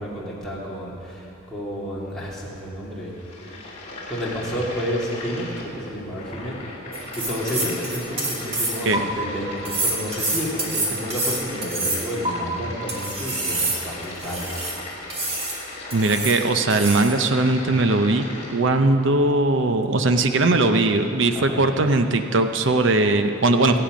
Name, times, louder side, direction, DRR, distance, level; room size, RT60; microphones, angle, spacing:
voice 1, 0.0-3.1 4.1-6.6 7.2-14.5 21.3-21.7 23.6-23.8, equal, ahead, -7 dB, 2.6 m, -30 dB
sound 1, 3.0-18.6, left 2 dB, 30° left, 2.6 m, -37 dB
sound 2, 6.9-9.0 9.7-12.3 12.9-14.8 15.1-15.6 15.9-16.4 16.7-17.2, right 2 dB, 25° right, 1.8 m, -27 dB
voice 2, 15.9-18.3 18.5-23.8, right 2 dB, 60° right, 7 dB, 0.6 m, -19 dB
22.0 x 8.8 x 5.2 m, 2.9 s
head